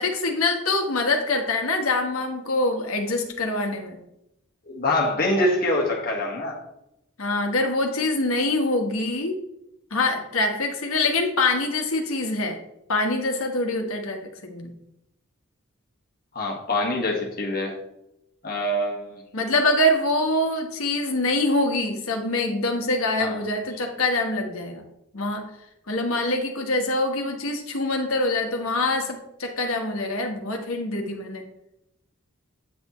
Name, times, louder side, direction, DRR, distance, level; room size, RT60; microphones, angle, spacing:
voice 1, 0.0-4.0 7.2-9.4 9.9-12.6 12.9-14.7 19.3-24.8 25.1-25.5 25.9-31.4, left 2 dB, 90° left, 3 dB, 1.4 m, -24 dB
voice 2, 4.7-6.6 16.3-17.8 18.4-19.2 23.2-23.4, left 1 dB, 45° left, -1 dB, 1.7 m, -25 dB
9.0 x 6.4 x 3.1 m, 0.83 s
head